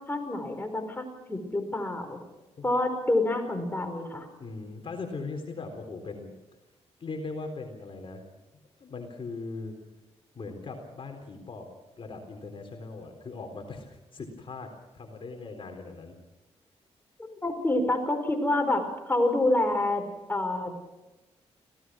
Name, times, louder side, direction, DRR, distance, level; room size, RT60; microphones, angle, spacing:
voice 1, 0.1-2.2 2.6-4.3 17.4-20.0 20.3-20.7, left 2 dB, 20° left, 4 dB, 4.9 m, -27 dB
voice 2, 4.4-6.3 7.0-8.2 8.8-9.8 10.3-11.7 12.0-16.2, left 3 dB, 50° left, 4 dB, 3.9 m, -39 dB
26.0 x 17.0 x 6.3 m, 1.1 s
cardioid pair, 70°, 12 cm